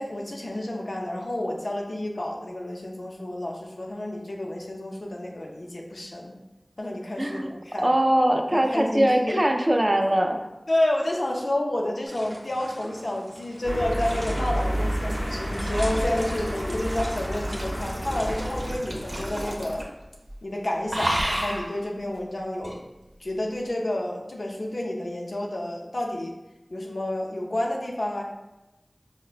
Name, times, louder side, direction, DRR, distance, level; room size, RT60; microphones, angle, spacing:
voice 1, 0.0-6.3 6.8-7.9 8.5-9.4 10.7-19.8 20.4-22.8 23.2-26.3 26.7-28.2, left 1 dB, 80° left, -1 dB, 0.5 m, -30 dB
voice 2, 7.2-7.5 7.8-10.4, right 1 dB, 35° right, 4 dB, 0.4 m, -22 dB
sound 1, 12.0-19.5, equal, 85° right, 0.7 m, -41 dB
sound 2, 13.6-18.8, equal, 25° left, 0.7 m, -30 dB
sound 3, 14.6-20.0 20.3-20.5 20.9-21.7 22.6-22.8, equal, 55° right, 0.7 m, -33 dB
4.5 x 2.1 x 2.4 m, 1.0 s
wide cardioid pair, 45°, 0 cm